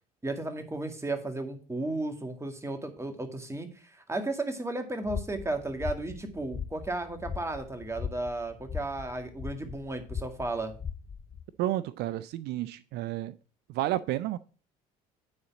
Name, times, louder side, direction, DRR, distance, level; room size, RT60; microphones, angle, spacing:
voice 1, 0.2-10.7, right 2 dB, 15° right, 2.1 m, -34 dB
sound 1, 5.0-11.4, left 7 dB, 30° left, 0.8 m, -39 dB
voice 2, 11.6-13.3 13.7-14.4, right 14 dB, 70° right, 0.4 m, -31 dB
9.5 x 4.1 x 7.1 m
supercardioid pair, 75°, 17 cm